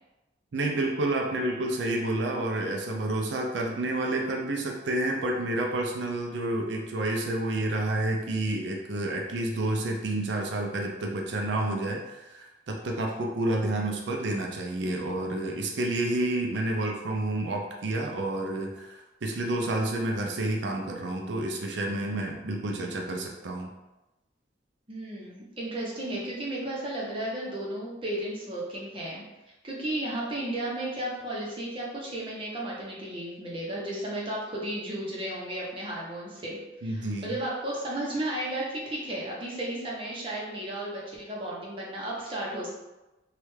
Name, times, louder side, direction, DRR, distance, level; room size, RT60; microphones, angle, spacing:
voice 1, 0.5-23.7 36.8-37.3, right 1 dB, 70° right, 1 dB, 0.5 m, -29 dB
voice 2, 24.9-29.2 29.6-42.7, right 1 dB, 30° right, -5 dB, 0.8 m, -34 dB
3.2 x 2.4 x 3.1 m, 1.0 s
head